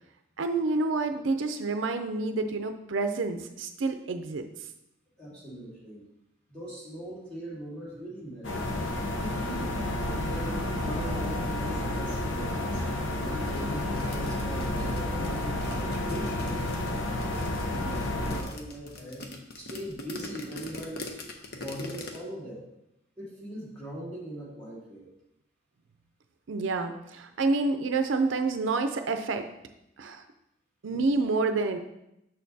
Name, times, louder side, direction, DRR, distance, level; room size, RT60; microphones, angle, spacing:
voice 1, 0.4-4.4 26.5-29.5 30.0-30.2 30.8-31.8, right 3 dB, 80° right, 7 dB, 0.5 m, -28 dB
voice 2, 5.2-6.0 6.5-8.7 9.2-12.8 13.2-16.9 17.3-19.3 19.6-21.0 21.5-22.7 23.2-25.0, equal, 5° left, -7 dB, 2.2 m, -40 dB
sound 1, 8.4-18.4, left 1 dB, 85° left, 0.8 m, -30 dB
sound 2, 13.5-22.2, left 2 dB, 50° left, 0.7 m, -43 dB
6.5 x 6.4 x 2.7 m, 0.85 s
head